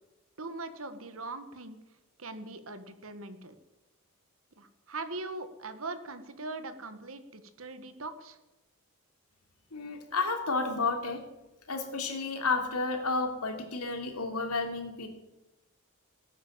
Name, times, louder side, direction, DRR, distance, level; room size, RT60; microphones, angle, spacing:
voice 1, 0.4-1.8 2.2-3.5 4.6-8.4, right 3 dB, 65° right, 9 dB, 1.7 m, -41 dB
voice 2, 9.7-11.2 11.7-15.1, left 3 dB, 85° left, 4 dB, 3.1 m, -31 dB
18.5 x 9.5 x 7.5 m, 1.0 s
head